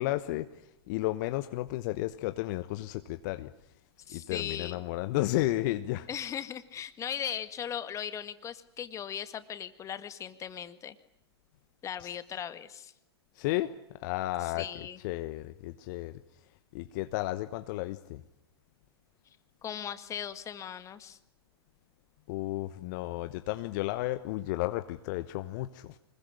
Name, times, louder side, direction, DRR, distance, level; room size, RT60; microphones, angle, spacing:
voice 1, 0.0-3.5 4.1-6.1 12.0-12.4 13.3-13.7 14.0-16.1 16.7-18.2 22.3-26.0, left 17 dB, 45° left, 1.1 m, -33 dB
voice 2, 4.1-4.8 6.1-11.0 11.8-12.9 14.4-15.0 19.6-21.2, left 9 dB, 20° left, 1.8 m, -38 dB
25.0 x 21.5 x 9.8 m
figure-of-eight pair, 105°, 14 cm